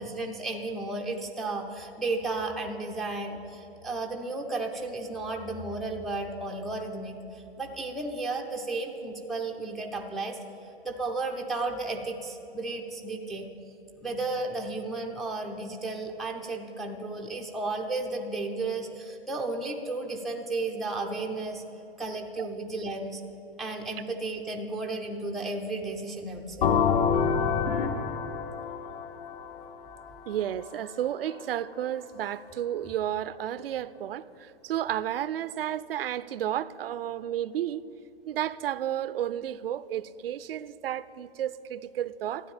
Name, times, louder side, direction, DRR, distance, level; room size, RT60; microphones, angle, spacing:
voice 1, 0.0-10.4 10.8-13.5 14.0-21.6 22.0-23.2 23.6-26.7, right 3 dB, ahead, 0.4 m, -33 dB
sound 1, 26.6-30.3, left 6 dB, 60° left, 1.1 m, -27 dB
voice 2, 30.3-37.8 38.3-42.5, right 11 dB, 65° right, 0.5 m, -32 dB
12.5 x 9.1 x 8.8 m
hypercardioid pair, 140°, 31 cm